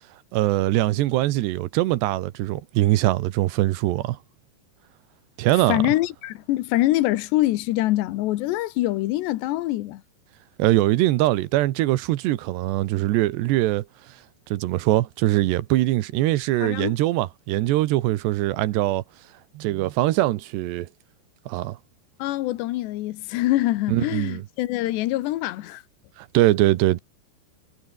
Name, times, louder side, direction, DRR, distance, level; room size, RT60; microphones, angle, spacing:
voice 1, 0.3-4.2 5.4-5.8 10.6-13.8 14.5-19.0 19.5-20.9 21.5-21.8 23.9-24.4 26.2-27.0, right 16 dB, 85° right, 3.2 m, -22 dB
voice 2, 5.7-10.0 16.6-16.9 22.2-25.8, left 16 dB, 90° left, 3.2 m, -24 dB
omnidirectional pair, 4.9 m